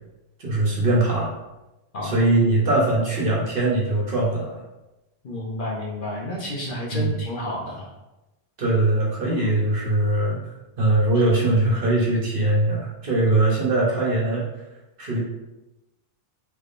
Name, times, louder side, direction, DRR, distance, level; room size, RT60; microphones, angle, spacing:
voice 1, 0.4-1.3 2.0-4.6 6.9-7.2 8.6-10.5 10.8-14.5 15.0-15.2, right 2 dB, 55° right, -3 dB, 0.9 m, -21 dB
voice 2, 5.2-7.8 9.2-9.5, left 1 dB, 55° left, -3 dB, 0.8 m, -30 dB
3.4 x 3.1 x 2.5 m, 1.0 s
omnidirectional pair, 1.2 m